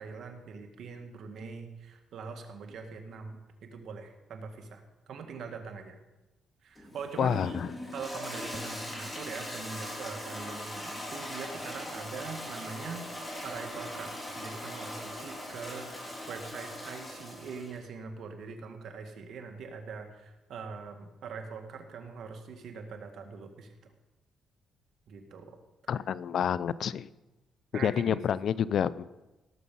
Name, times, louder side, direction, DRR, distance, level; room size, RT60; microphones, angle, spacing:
voice 1, 0.0-6.0 6.6-7.6 7.9-13.1 13.4-23.9 25.1-25.6 27.7-28.3, right 5 dB, 70° right, 5 dB, 1.9 m, -42 dB
Toilet flush, 6.8-17.8, left 1 dB, 15° left, 3.4 m, -40 dB
voice 2, 7.2-7.7 25.9-27.1 27.7-29.2, left 8 dB, 65° left, 18 dB, 0.4 m, -29 dB
17.5 x 7.2 x 5.5 m, 1.1 s
cardioid pair, 90°, 0 cm